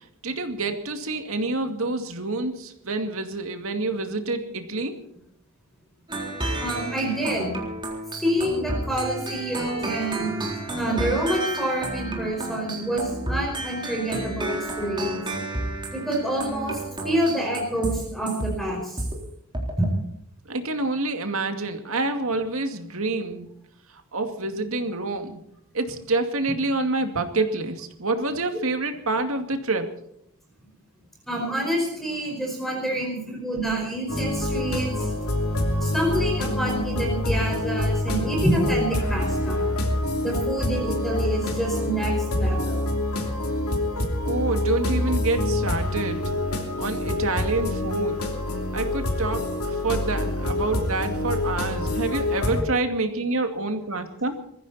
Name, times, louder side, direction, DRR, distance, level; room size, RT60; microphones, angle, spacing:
voice 1, 0.2-5.0 20.5-23.5 23.9-25.4 25.7-29.9 44.2-46.2 46.8-48.3 48.7-54.3, right 2 dB, 65° right, 6 dB, 2.4 m, -27 dB
sound 1, 6.1-19.2 19.5-19.9, right 1 dB, 20° right, 3.8 m, -31 dB
voice 2, 6.6-7.6 8.2-10.3 10.8-15.2 15.9-19.0 19.8-19.9 31.3-35.1 35.8-39.7 40.2-42.8, right 1 dB, ahead, -1 dB, 5.1 m, -27 dB
sound 2, 34.1-52.6, left 1 dB, 85° left, 3.2 m, -26 dB
22.0 x 15.0 x 4.3 m, 0.73 s
head